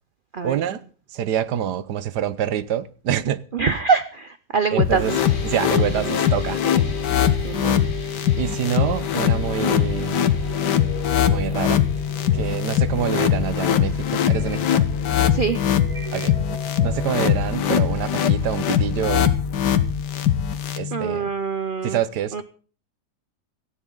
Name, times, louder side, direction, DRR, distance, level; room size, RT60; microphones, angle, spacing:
voice 1, 0.4-0.8 1.1-3.4 4.7-6.6 8.4-10.3 11.2-11.8 12.3-14.8 16.1-16.3 16.8-19.4 20.8-21.3 21.8-22.4, right 10 dB, 75° right, 1.4 m, -26 dB
voice 2, 3.5-5.2 5.8-6.2 6.6-6.8 7.4-7.8 15.3-15.7 20.9-22.0 22.3-22.4, right 5 dB, 50° right, 0.6 m, -24 dB
sound 1, 4.8-20.8, left 9 dB, 85° left, 1.7 m, -22 dB
sound 2, 5.1-21.0, left 9 dB, 30° left, 1.8 m, -30 dB
sound 3, 9.4-17.4, equal, 20° right, 1.9 m, -40 dB
17.5 x 14.0 x 3.9 m
omnidirectional pair, 1.8 m